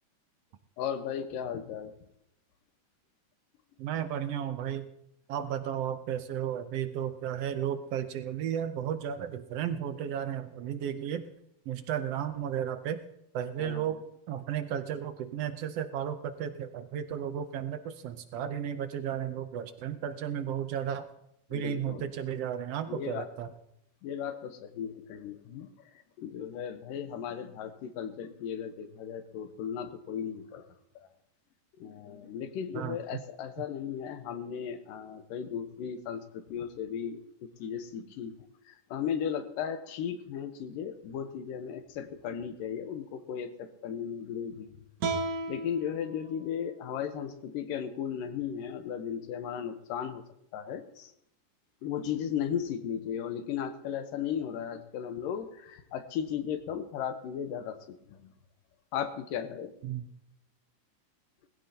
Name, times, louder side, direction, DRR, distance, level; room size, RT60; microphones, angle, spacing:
voice 1, 0.8-1.9 13.6-13.9 21.5-22.1 22.9-23.3 24.0-25.7 26.2-30.7 31.0-31.1 31.8-44.7 45.5-50.2 50.5-51.1 51.8-58.3 58.9-59.7, left 8 dB, 85° left, 9 dB, 2.7 m, -36 dB
voice 2, 3.8-4.9 5.3-11.3 11.6-13.0 13.3-21.1 21.5-23.5 32.7-33.2 59.8-60.1, right 9 dB, 75° right, 9 dB, 1.4 m, -34 dB
sound 1, 45.0-48.2, right 3 dB, 60° right, 2.5 m, -37 dB
20.0 x 15.5 x 2.9 m, 0.78 s
omnidirectional pair, 3.8 m